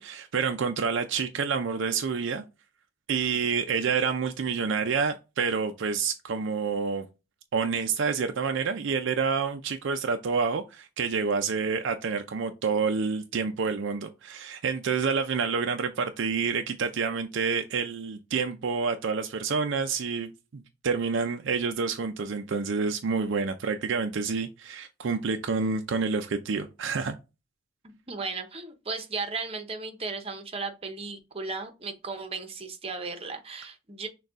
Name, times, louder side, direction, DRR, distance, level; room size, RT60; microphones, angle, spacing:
voice 1, 0.0-2.4 3.1-7.1 7.5-27.2, right 5 dB, 60° right, 0.4 m, -28 dB
voice 2, 27.8-34.1, right 4 dB, 30° right, 0.8 m, -35 dB
6.4 x 2.3 x 3.5 m
head